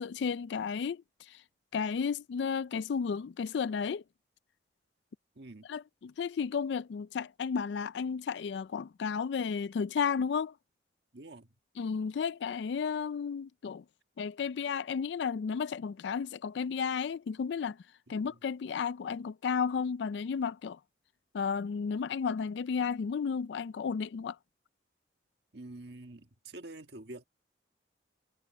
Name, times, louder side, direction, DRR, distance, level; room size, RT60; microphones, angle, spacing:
voice 1, 0.0-1.4 1.7-4.0 5.7-10.5 11.8-13.8 14.2-17.8 18.1-20.8 21.3-24.4, left 6 dB, 75° left, 0.3 m, -33 dB
voice 2, 5.3-5.7 11.1-11.5 18.1-18.4 25.5-27.2, right 2 dB, 65° right, 1.6 m, -47 dB
head